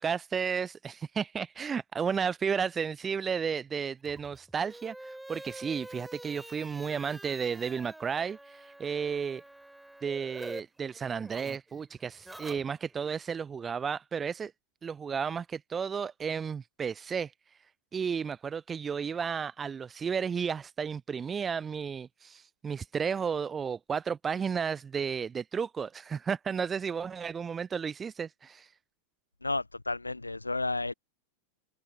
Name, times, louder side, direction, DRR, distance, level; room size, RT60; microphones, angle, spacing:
voice 1, 0.0-9.4 10.0-14.5 14.8-17.6 17.9-28.7, right 6 dB, 20° right, 0.4 m, -33 dB
sound 1, 4.0-10.6 10.9-13.1, right 1 dB, 5° right, 4.5 m, -47 dB
voice 2, 29.4-30.9, left 2 dB, 80° left, 0.6 m, -32 dB
figure-of-eight pair, 90°, 0 cm